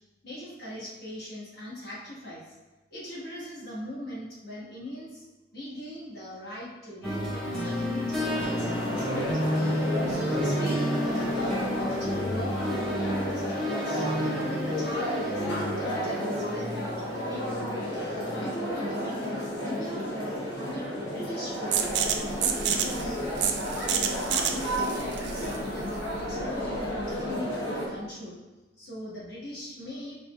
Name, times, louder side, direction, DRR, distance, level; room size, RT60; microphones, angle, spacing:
voice 1, 0.2-2.4 2.9-5.2 5.5-9.3 10.1-23.2 23.7-28.4 28.8-30.2, equal, 55° left, -7 dB, 1.4 m, -40 dB
sound 1, 7.0-18.5, equal, ahead, 0.7 m, -31 dB
sound 2, 8.1-27.9, equal, 75° left, 1.1 m, -32 dB
sound 3, 21.7-27.2, right 7 dB, 65° right, 0.4 m, -30 dB
4.9 x 3.4 x 2.3 m, 1.1 s
head